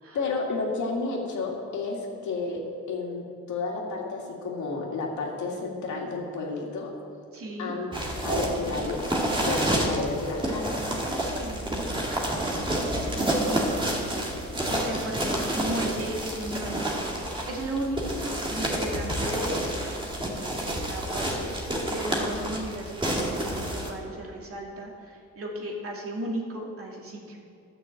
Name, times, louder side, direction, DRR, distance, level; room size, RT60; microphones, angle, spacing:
voice 1, 0.1-2.6 2.9-6.9 7.6-7.9 8.2-10.9, left 3 dB, 70° left, -1 dB, 2.4 m, -31 dB
voice 2, 7.3-7.8 10.6-12.1 12.6-13.8 14.2-17.0 17.3-19.7 20.2-27.4, right 1 dB, 50° right, -1 dB, 2.5 m, -36 dB
sound 1, 7.9-23.9, right 1 dB, 15° right, 2.3 m, -29 dB
11.0 x 6.2 x 7.9 m, 2.5 s
cardioid pair, 90°, 30 cm